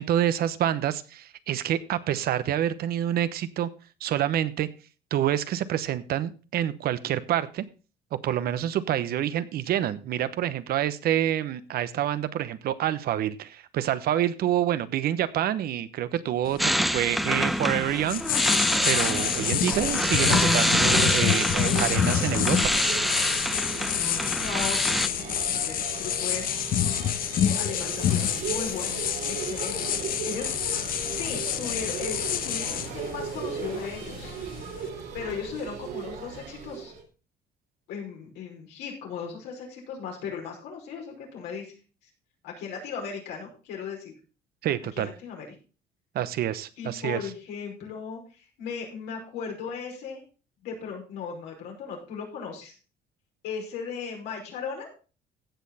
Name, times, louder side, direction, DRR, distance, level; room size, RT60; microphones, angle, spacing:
voice 1, 0.0-3.7 4.0-4.7 5.1-7.6 8.1-22.7 44.6-45.1 46.1-47.2, right 11 dB, 65° right, 14 dB, 0.9 m, -27 dB
sound 1, 16.5-34.9, left 10 dB, 60° left, 0.9 m, -28 dB
sound 2, 16.6-25.1, equal, ahead, 0.7 m, -26 dB
sound 3, 18.7-37.0, right 6 dB, 85° right, 3.3 m, -37 dB
voice 2, 24.4-26.6 27.4-29.0 29.3-29.8 30.2-30.5 31.2-34.3 35.1-36.9 37.9-41.7 42.4-44.1 44.9-45.5 46.8-50.2 50.6-52.8 53.4-54.9, left 6 dB, 85° left, 0 dB, 5.3 m, -37 dB
16.0 x 6.5 x 4.2 m, 0.35 s
cardioid pair, 110°, 17 cm